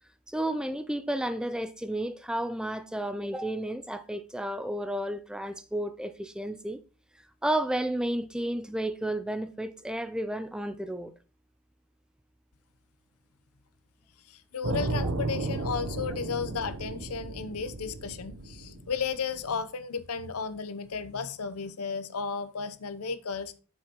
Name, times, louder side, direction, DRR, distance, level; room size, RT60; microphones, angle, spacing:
voice 1, 0.3-6.8 7.4-11.1, right 1 dB, 5° right, 0.3 m, -32 dB
voice 2, 14.2-23.6, left 5 dB, 85° left, 0.7 m, -34 dB
sound 1, 14.6-19.5, right 2 dB, 90° right, 0.8 m, -34 dB
7.9 x 6.4 x 2.9 m
head